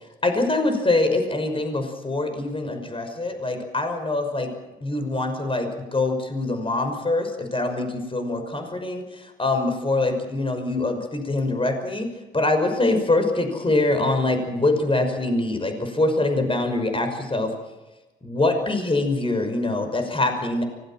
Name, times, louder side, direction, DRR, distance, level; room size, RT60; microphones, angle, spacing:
voice 1, 0.2-4.5 4.8-12.1 12.3-17.5 18.2-20.6, left 2 dB, 25° left, 6 dB, 5.9 m, -24 dB
24.5 x 19.0 x 7.6 m, 1.1 s
supercardioid pair, 55°, 20 cm